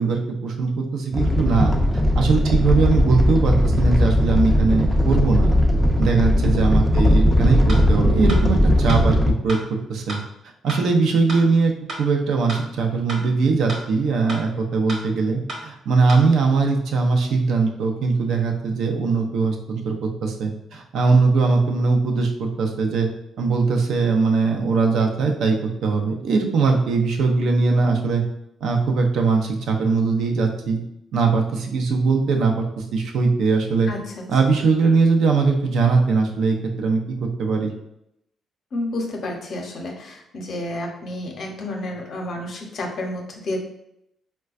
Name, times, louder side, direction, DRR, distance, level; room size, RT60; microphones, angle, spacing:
voice 1, 0.0-1.7 2.1-5.6 6.0-9.2 9.4-10.2 10.6-11.7 12.0-23.1 23.4-28.2 28.6-30.8 31.1-33.9 34.3-37.7, right 4 dB, 75° right, 2 dB, 0.5 m, -20 dB
Animal, 1.1-9.3, left 1 dB, 5° right, 0.4 m, -18 dB
voice 2, 6.2-6.5 33.9-34.2 38.7-43.6, left 2 dB, 60° left, 1 dB, 0.7 m, -30 dB
sound 1, 7.7-7.8 8.3-8.4 8.9-9.0 9.5-9.6 10.1-10.2 10.7-10.8 11.3-11.4 11.9-12.0 12.5-12.6 13.1-13.2 13.7-13.8 14.3-14.4 14.9-15.0 15.5-15.6 16.1-16.2, right 1 dB, 55° right, 1.1 m, -31 dB
4.1 x 2.2 x 2.4 m, 0.80 s
cardioid pair, 90°, 0 cm